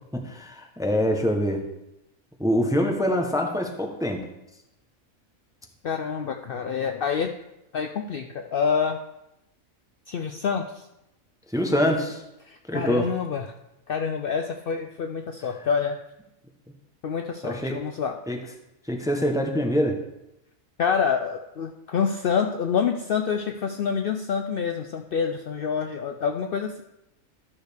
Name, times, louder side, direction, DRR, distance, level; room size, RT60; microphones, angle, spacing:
voice 1, 0.1-1.6 2.4-4.2 11.5-12.2 12.7-13.0 17.4-17.7 18.3-18.4 18.9-20.0, equal, 5° right, 2 dB, 0.5 m, -24 dB
voice 2, 5.8-7.3 7.7-9.0 10.1-10.9 12.4-13.5 13.9-16.0 17.0-18.2 20.8-26.8, left 6 dB, 85° left, 4 dB, 0.4 m, -27 dB
12.5 x 6.4 x 3.4 m, 0.89 s
omnidirectional pair, 1.5 m